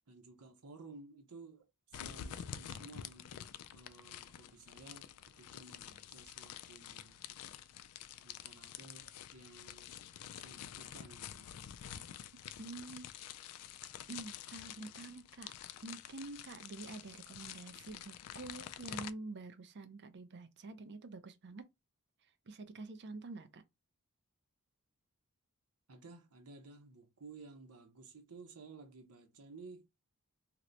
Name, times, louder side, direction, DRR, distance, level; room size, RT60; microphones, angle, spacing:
voice 1, 0.1-7.2 8.2-10.0 10.3-11.8 25.9-29.9, right 3 dB, 90° right, 0.9 m, -55 dB
sound 1, 1.9-19.1, left 10 dB, 80° left, 0.4 m, -48 dB
voice 2, 12.6-13.1 14.1-15.5 15.8-21.7 22.5-23.6, right 3 dB, 50° right, 0.5 m, -47 dB
2.9 x 2.1 x 3.8 m
head